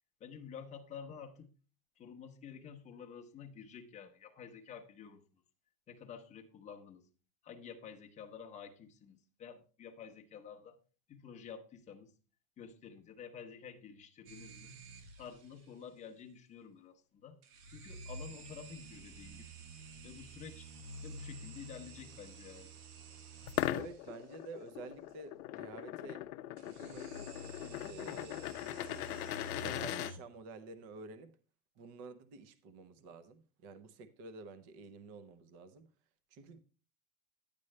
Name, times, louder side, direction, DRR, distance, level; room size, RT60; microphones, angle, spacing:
voice 1, 0.2-1.5 2.0-5.2 5.9-7.1 7.4-10.8 11.1-12.1 12.6-14.8 15.2-17.4 17.7-19.5 20.0-20.7 21.0-22.7, left 7 dB, 15° left, 0.8 m, -50 dB
sound 1, 14.3-15.5 17.4-24.1 26.6-30.2, right 2 dB, 90° right, 1.5 m, -50 dB
sound 2, 23.4-30.1, left 14 dB, 70° left, 0.7 m, -40 dB
voice 2, 23.7-26.2 26.6-27.2 27.6-29.1 29.6-31.4 31.8-35.9 36.3-36.6, right 3 dB, 35° right, 0.8 m, -50 dB
10.0 x 9.9 x 3.2 m
supercardioid pair, 155°, 44 cm